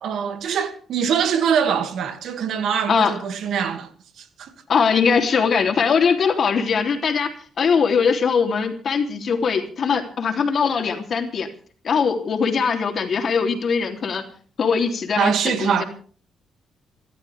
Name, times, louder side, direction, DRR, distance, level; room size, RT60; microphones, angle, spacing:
voice 1, 0.0-3.9 4.2-4.5 15.2-15.8, right 7 dB, 70° right, 2.4 m, -23 dB
voice 2, 4.7-11.5 11.8-14.2 14.6-15.8, left 6 dB, 50° left, 3.3 m, -21 dB
27.5 x 12.5 x 3.5 m
cardioid pair, 90°, 0 cm